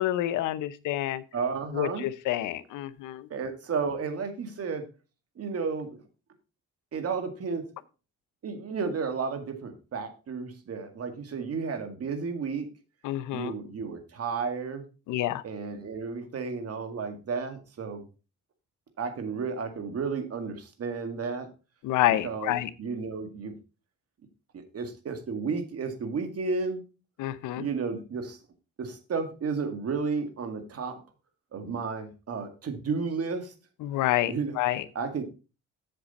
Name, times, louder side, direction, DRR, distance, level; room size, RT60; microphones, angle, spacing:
voice 1, 0.0-1.2 1.7-3.2 13.0-13.5 15.1-15.4 21.8-22.7 27.2-27.6 33.8-34.8, left 14 dB, 90° left, 14 dB, 0.7 m, -28 dB
voice 2, 1.3-2.1 3.3-4.9 5.4-6.0 6.9-7.7 8.4-12.7 13.3-14.8 15.4-18.1 19.0-21.5 22.1-23.5 24.5-26.8 27.6-28.4 28.8-31.0 31.5-33.5 34.3-34.6 34.9-35.2, right 5 dB, 50° right, 7 dB, 2.0 m, -32 dB
7.8 x 7.3 x 4.1 m, 0.32 s
cardioid pair, 90°, 30 cm